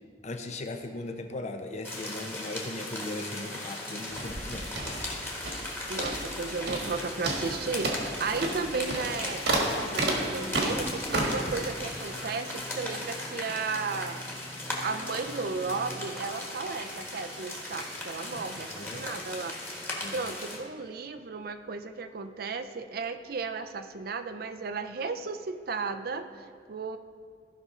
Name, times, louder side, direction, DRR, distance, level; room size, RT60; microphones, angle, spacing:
voice 1, 0.2-5.3 18.7-19.0 20.0-20.2, left 2 dB, 40° left, 5 dB, 0.6 m, -38 dB
sound 1, 1.8-20.6, left 1 dB, 15° left, 1.4 m, -38 dB
sound 2, 4.1-5.7 6.0-6.4 6.7-7.0 7.2-11.5, right 2 dB, 70° right, 1.6 m, -31 dB
voice 2, 5.9-14.2 14.8-19.8 20.1-27.0, right 4 dB, 55° right, 9 dB, 0.5 m, -34 dB
sound 3, 7.1-16.0, equal, 70° left, 2.3 m, -46 dB
15.0 x 5.6 x 3.7 m, 2.1 s
head